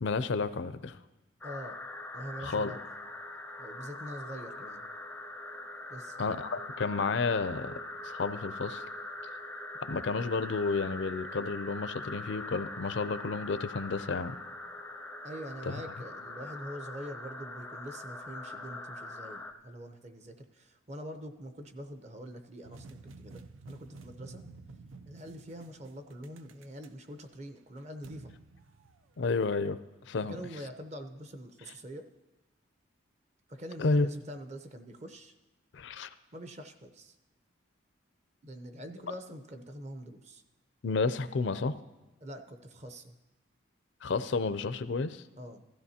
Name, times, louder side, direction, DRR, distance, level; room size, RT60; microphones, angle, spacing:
voice 1, 0.0-1.0 2.4-2.7 6.2-7.7 8.0-8.8 9.8-14.4 15.7-15.8 29.2-29.8 30.0-30.4 33.8-34.1 35.7-36.1 40.8-41.8 44.0-45.2, left 4 dB, 65° left, 13 dB, 0.5 m, -31 dB
sound 1, 1.4-19.5, left 2 dB, 10° left, 0.5 m, -42 dB
voice 2, 1.4-1.8 2.1-2.8 3.6-4.8 5.9-6.2 15.2-24.4 25.1-28.3 30.2-32.1 33.5-35.3 36.3-37.2 38.4-40.4 42.2-43.2 45.4-45.6, equal, 35° right, 7 dB, 0.7 m, -44 dB
sound 2, 22.6-29.5, right 3 dB, 85° right, 0.5 m, -52 dB
15.5 x 13.5 x 2.8 m, 1.1 s
head